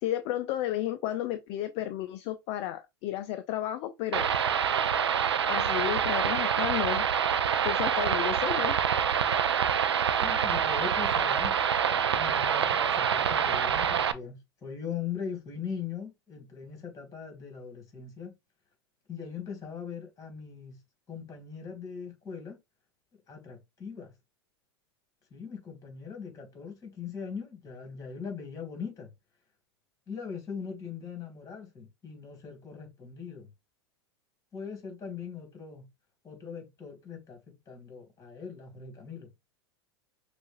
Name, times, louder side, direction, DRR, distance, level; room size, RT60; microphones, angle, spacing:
voice 1, 0.0-4.3 5.5-7.1 7.6-8.8, left 13 dB, 45° left, 0.5 m, -32 dB
sound 1, 4.1-14.1, right 8 dB, 85° right, 0.4 m, -26 dB
voice 2, 10.2-11.6 11.9-18.4 19.1-20.8 21.1-22.6 23.3-24.1 25.3-29.1 30.1-33.5 34.5-35.9 36.2-39.3, left 6 dB, 25° left, 2.3 m, -40 dB
6.2 x 2.5 x 2.5 m
hypercardioid pair, 90°, 14 cm